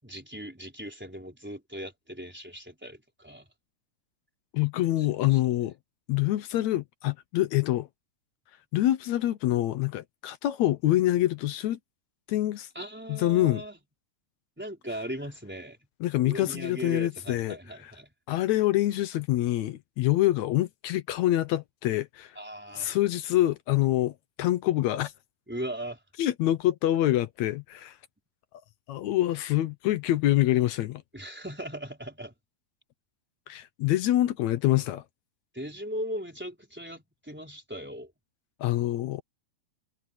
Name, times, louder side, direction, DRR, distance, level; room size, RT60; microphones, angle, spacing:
voice 1, 0.0-3.5 5.0-5.4 12.7-13.8 14.6-15.8 16.2-18.1 22.4-22.9 25.5-26.0 31.1-32.3 35.5-38.1, equal, 5° right, 4.1 m, -38 dB
voice 2, 4.5-5.7 6.1-7.9 8.7-11.8 12.3-12.7 13.1-13.6 16.0-17.6 17.8-17.9 18.3-22.4 22.8-25.1 26.2-28.0 28.9-31.0 33.5-35.0 38.6-39.2, left 14 dB, 75° left, 1.8 m, -26 dB
omnidirectional pair, 3.9 m